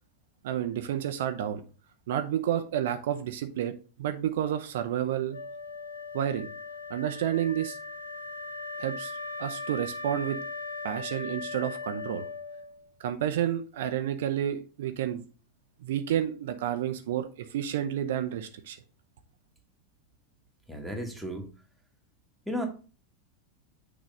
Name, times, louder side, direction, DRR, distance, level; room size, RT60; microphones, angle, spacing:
voice 1, 0.4-1.6 2.1-3.7 4.0-5.4 6.1-6.5 6.9-7.8 8.8-10.4 10.8-12.2 13.0-15.2 15.8-18.8, right 10 dB, 55° right, 8 dB, 0.5 m, -30 dB
Wind instrument woodwind instrument, 5.3-12.9, left 3 dB, 80° left, 0.7 m, -39 dB
voice 2, 20.7-21.5 22.5-22.7, equal, ahead, 1 dB, 1.4 m, -34 dB
6.3 x 3.0 x 5.2 m, 0.36 s
figure-of-eight pair, 90°, 0 cm